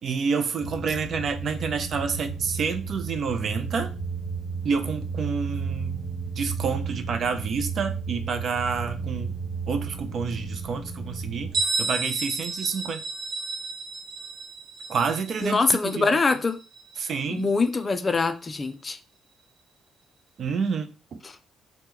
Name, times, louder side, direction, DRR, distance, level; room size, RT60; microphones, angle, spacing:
voice 1, 0.0-3.9 4.6-9.3 9.7-13.0 14.9-15.6 16.0-16.1 17.0-17.4 20.4-21.2, right 5 dB, 60° right, 0.4 m, -29 dB
sound 1, 0.6-11.6, right 5 dB, 10° right, 1.3 m, -33 dB
Bell, 11.5-17.1, right 3 dB, 85° right, 0.9 m, -32 dB
voice 2, 15.4-16.6 17.3-19.0 21.2-21.4, left 3 dB, 30° left, 0.4 m, -24 dB
3.0 x 2.1 x 3.6 m
cardioid pair, 90°, 0 cm